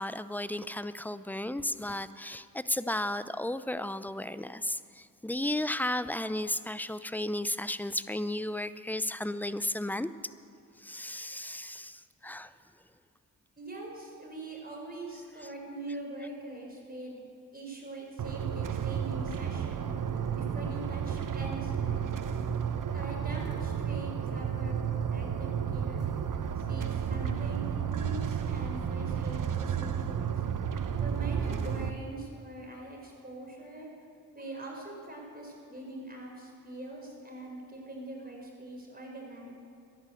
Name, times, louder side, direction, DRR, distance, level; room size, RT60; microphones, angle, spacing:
voice 1, 0.0-10.1 10.8-12.5, left 1 dB, 5° left, 14 dB, 0.6 m, -34 dB
voice 2, 13.6-17.2 17.5-19.9 20.3-22.1 22.9-26.1 26.6-30.3 31.0-33.9 34.3-39.5, right 2 dB, 25° right, -1 dB, 4.4 m, -43 dB
sound 1, 18.2-31.9, right 8 dB, 60° right, 0.9 m, -32 dB
13.5 x 11.0 x 7.8 m, 2.4 s
supercardioid pair, 50°, 36 cm